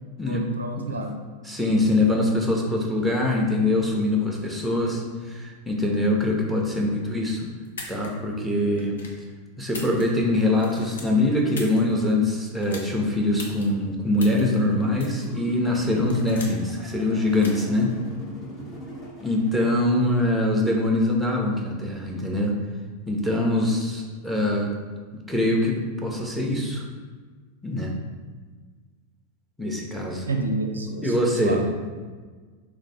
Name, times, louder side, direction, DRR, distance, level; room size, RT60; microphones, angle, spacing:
voice 1, 0.2-1.2 2.2-2.8 5.3-5.5 7.8-7.9 30.3-31.7, right 2 dB, 75° right, 3 dB, 0.4 m, -31 dB
voice 2, 1.5-7.5 7.9-9.0 9.6-17.9 19.2-22.5 23.1-24.7 25.3-26.8 27.6-27.9 29.6-30.3 31.0-31.6, left 1 dB, ahead, 0 dB, 0.6 m, -23 dB
sound 1, 7.6-8.1 8.8-9.2 9.6-10.3 10.6-11.8 12.6-12.9 13.4-13.6 14.2-14.4 15.0-15.3 15.7-16.7 17.3-17.6, left 3 dB, 65° left, 0.7 m, -39 dB
sound 2, 14.6-19.9, equal, 25° left, 0.9 m, -42 dB
3.4 x 3.0 x 4.1 m, 1.5 s
figure-of-eight pair, 90°, 0 cm